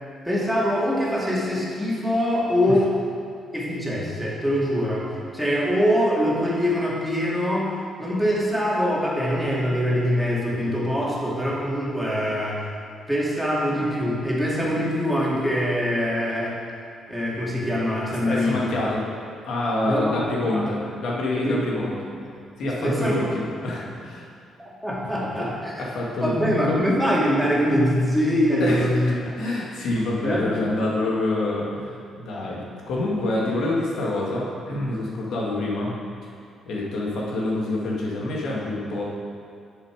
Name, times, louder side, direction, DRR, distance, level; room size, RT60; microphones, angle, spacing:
voice 1, 0.2-2.9 3.5-7.7 8.0-12.6 13.1-16.6 17.1-18.6 19.9-20.7 21.4-21.9 22.8-23.2 24.8-25.9 26.2-29.1 30.2-30.7 32.4-32.6, equal, ahead, -6 dB, 2.6 m, -23 dB
voice 2, 18.1-19.0 19.4-22.0 22.6-24.3 25.2-25.5 25.8-26.3 26.7-26.8 28.6-32.6 32.9-36.3 36.7-39.0, left 2 dB, 75° left, -4 dB, 1.9 m, -27 dB
9.8 x 7.0 x 4.9 m, 2.3 s
cardioid pair, 90°, 0 cm